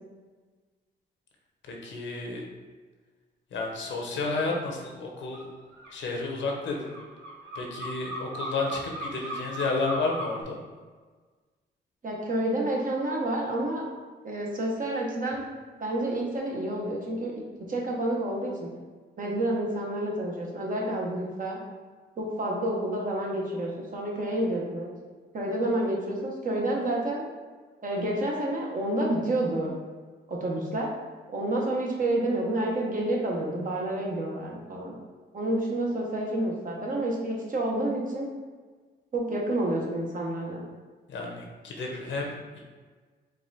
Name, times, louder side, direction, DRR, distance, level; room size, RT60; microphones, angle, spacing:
voice 1, 1.7-2.4 3.5-5.5 5.9-7.0 7.5-10.6 41.1-42.6, left 3 dB, 75° left, 0 dB, 0.9 m, -31 dB
sound 1, 5.3-5.5 5.7-10.4, right 1 dB, 75° right, 1.4 m, -37 dB
voice 2, 12.0-13.9 14.2-15.4 15.8-17.3 17.7-18.7 19.2-21.6 22.2-24.9 25.3-27.2 27.8-29.7 30.3-30.9 31.3-34.9 35.3-38.3 39.1-40.6, right 1 dB, 45° right, -2 dB, 1.1 m, -29 dB
4.6 x 2.5 x 3.9 m, 1.4 s
cardioid pair, 85°, 19 cm